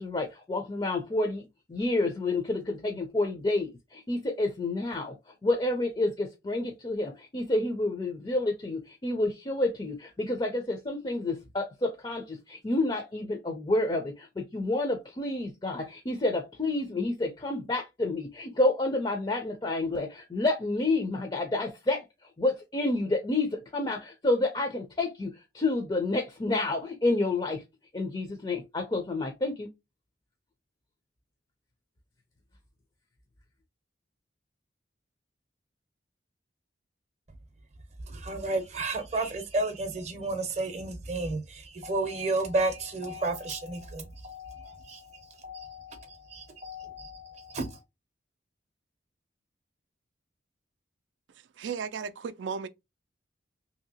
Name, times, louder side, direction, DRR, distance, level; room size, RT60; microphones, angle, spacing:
voice 1, 0.0-27.6 27.9-29.7, left 2 dB, 25° left, 0.4 m, -29 dB
voice 2, 38.1-47.8, right 2 dB, 35° right, 0.6 m, -32 dB
voice 3, 51.6-52.7, right 6 dB, 75° right, 0.4 m, -34 dB
2.9 x 2.7 x 2.7 m
head